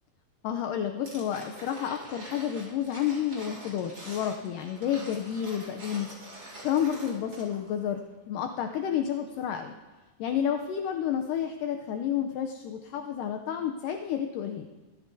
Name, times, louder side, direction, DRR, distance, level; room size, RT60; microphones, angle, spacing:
voice 1, 0.4-6.1 6.6-9.7 10.2-14.7, left 9 dB, 75° left, 5 dB, 2.1 m, -30 dB
sound 1, 1.1-7.7 8.0-8.1, right 1 dB, 25° right, 3.6 m, -45 dB
24.5 x 13.5 x 2.7 m, 1.3 s
omnidirectional pair, 4.1 m